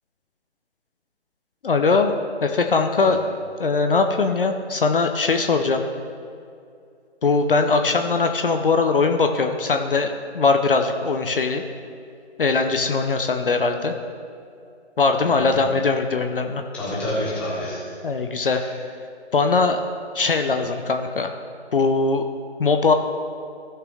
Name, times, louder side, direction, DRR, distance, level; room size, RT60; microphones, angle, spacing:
voice 1, 1.6-2.1 2.4-3.2 3.6-5.8 7.2-11.6 12.4-13.9 15.0-16.6 18.0-18.6 19.3-19.8 20.1-21.3 21.7-22.2 22.6-22.9, left 4 dB, 50° left, 6 dB, 0.7 m, -20 dB
voice 2, 15.2-15.6 16.7-17.9 18.4-18.8, left 1 dB, 5° left, -8 dB, 1.0 m, -29 dB
16.0 x 5.9 x 3.4 m, 2.4 s
figure-of-eight pair, 150°, 34 cm